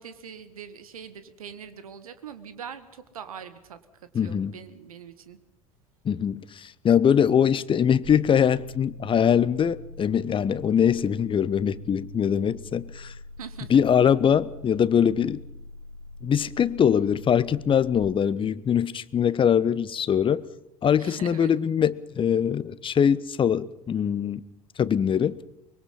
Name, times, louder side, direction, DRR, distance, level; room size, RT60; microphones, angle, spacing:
voice 1, 0.0-3.8 4.2-5.4 13.4-13.8 20.9-21.5, right 7 dB, 80° right, 1.8 m, -42 dB
voice 2, 4.1-4.5 6.0-13.1 13.7-15.4 16.2-20.5 20.8-24.4 24.8-25.4, left 8 dB, 30° left, 1.0 m, -22 dB
sound 1, 8.0-18.1, left 2 dB, 40° right, 2.4 m, -44 dB
24.0 x 22.5 x 5.6 m
figure-of-eight pair, 75°, 18 cm